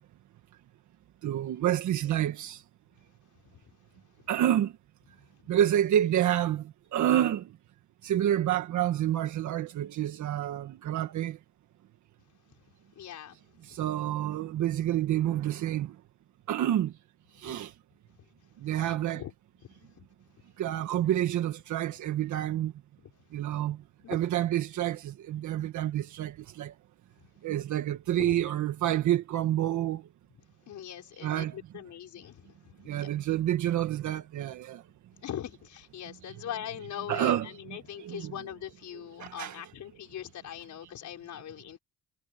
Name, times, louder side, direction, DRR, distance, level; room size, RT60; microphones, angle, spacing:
voice 1, 1.2-2.6 4.3-4.7 5.5-6.6 6.9-7.4 8.0-11.4 13.7-15.9 16.5-16.9 17.4-17.7 18.6-19.2 20.6-22.7 23.3-23.8 24.1-26.7 27.4-30.0 31.2-31.6 32.9-34.8 36.3-36.7 37.1-38.3 39.2-39.6, right 11 dB, 75° right, 1.6 m, -28 dB
voice 2, 13.0-13.4 13.7-13.8 17.4-17.6 18.2-18.3 18.7-19.3 20.0-20.1 23.0-23.1 24.0-24.2 28.2-28.4 30.7-33.1 35.2-41.8, left 11 dB, 70° left, 5.5 m, -41 dB
cardioid pair, 90°, 30 cm